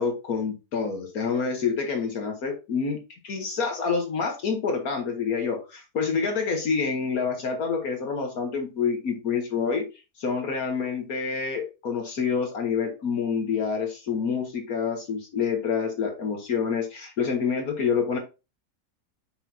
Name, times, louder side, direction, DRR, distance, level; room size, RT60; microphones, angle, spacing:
voice 1, 0.0-9.9 10.2-18.2, left 5 dB, 65° left, 4 dB, 1.6 m, -27 dB
6.4 x 6.0 x 2.7 m, 0.29 s
omnidirectional pair, 1.8 m